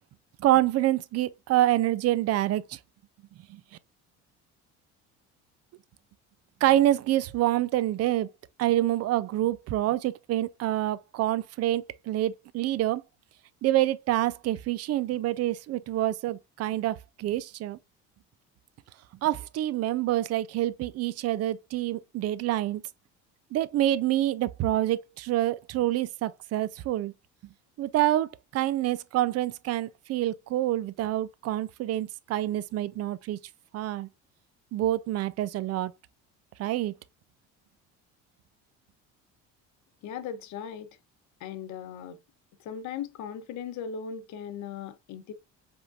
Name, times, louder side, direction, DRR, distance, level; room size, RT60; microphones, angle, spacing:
voice 1, 0.4-2.8 3.5-3.6 6.6-8.3 8.6-13.0 13.6-17.8 19.2-22.8 23.5-27.1 27.8-33.4 33.7-34.1 34.7-35.9 36.6-36.9, right 14 dB, 50° right, 0.5 m, -27 dB
voice 2, 40.0-40.9 41.4-42.2 42.6-45.3, left 7 dB, 65° left, 0.9 m, -38 dB
5.0 x 3.7 x 2.4 m
cardioid pair, 105°, 31 cm